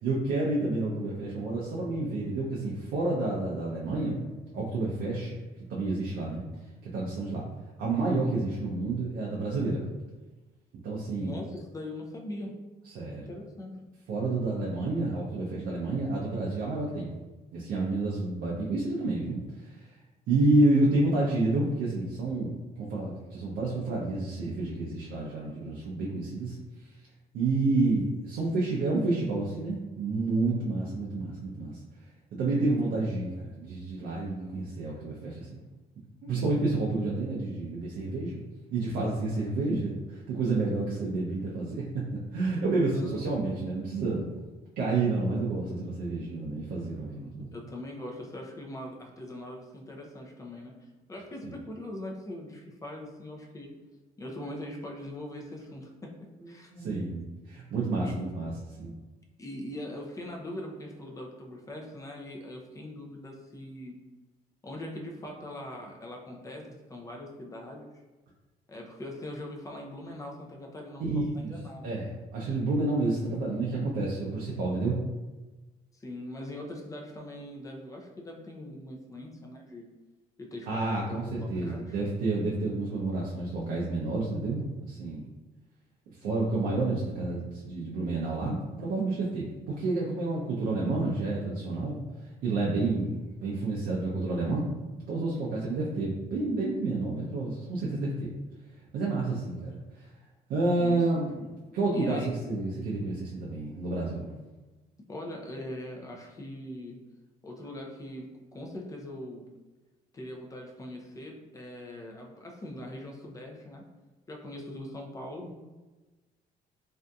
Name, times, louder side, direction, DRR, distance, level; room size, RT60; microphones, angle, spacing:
voice 1, 0.0-4.2 4.5-5.4 5.7-6.4 6.9-7.5 7.8-9.8 10.8-11.3 12.8-13.3 14.1-17.1 17.5-19.9 20.3-26.9 27.3-31.8 32.3-35.6 36.2-38.4 38.7-42.0 42.3-44.3 44.8-47.5 56.7-58.5 58.8-59.0 71.0-71.6 71.8-75.0 80.7-85.2 86.2-92.0 92.4-94.7 95.1-98.3 98.9-100.1 100.5-101.5 101.7-104.3, right 2 dB, 65° right, -5 dB, 0.5 m, -29 dB
voice 2, 11.1-12.6 13.1-13.8 42.8-43.3 47.5-50.7 51.1-53.7 54.2-56.7 58.0-58.2 59.4-64.0 64.6-67.9 68.7-71.1 71.3-71.9 75.9-79.8 80.4-82.0 100.8-101.0 101.9-102.3 105.1-107.0 107.4-109.5 110.1-113.8 114.3-115.5, left 1 dB, 20° left, 1 dB, 0.4 m, -41 dB
2.6 x 2.5 x 2.3 m, 1.2 s
cardioid pair, 110°, 17 cm